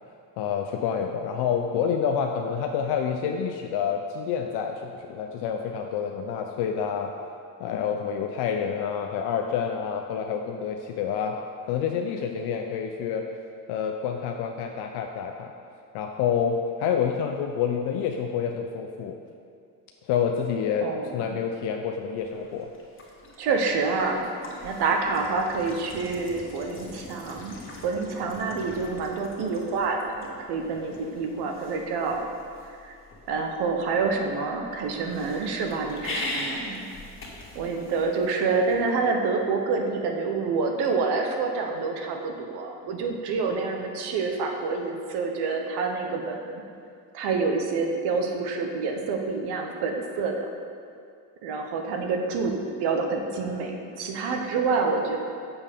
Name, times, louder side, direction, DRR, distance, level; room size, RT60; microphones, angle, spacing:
voice 1, 0.4-7.1 7.6-11.4 11.7-13.2 13.7-15.5 15.9-19.2 20.0-20.9 21.1-22.7, left 7 dB, 70° left, 3 dB, 0.6 m, -28 dB
voice 2, 20.8-21.3 23.4-24.2 24.6-27.6 27.8-32.3 32.8-33.0 33.3-36.8 37.5-46.6 47.1-50.5 51.4-55.2, right 4 dB, 70° right, 3 dB, 1.0 m, -27 dB
sound 1, 22.2-38.9, left 2 dB, 30° left, 1.6 m, -42 dB
7.1 x 6.8 x 3.6 m, 2.3 s
supercardioid pair, 80°, 41 cm